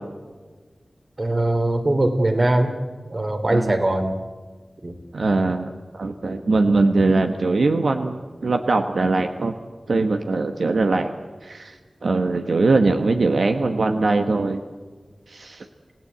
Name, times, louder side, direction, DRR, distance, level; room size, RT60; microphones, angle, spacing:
voice 1, 1.2-2.7 3.1-4.1 4.8-4.9, right 1 dB, 40° right, 6 dB, 3.1 m, -21 dB
voice 2, 5.1-9.5 9.9-11.1 11.4-11.7 12.0-14.6 15.3-15.7, right 3 dB, 80° right, 5 dB, 1.3 m, -21 dB
27.5 x 17.5 x 8.2 m, 1.4 s
wide cardioid pair, 85°, 0 cm